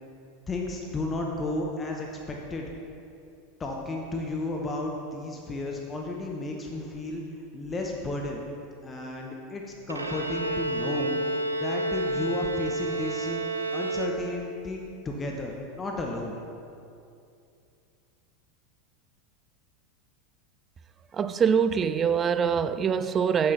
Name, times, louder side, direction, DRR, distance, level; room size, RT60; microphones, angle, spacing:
voice 1, 0.5-2.7 3.6-7.2 7.5-8.4 8.8-9.6 9.9-13.4 13.7-16.4, left 2 dB, 20° left, 0.9 m, -33 dB
Bowed string instrument, 9.9-14.6, right 2 dB, 90° right, 0.6 m, -30 dB
voice 2, 21.1-23.5, right 7 dB, 30° right, 0.4 m, -24 dB
7.7 x 7.6 x 4.1 m
figure-of-eight pair, 85°, 0 cm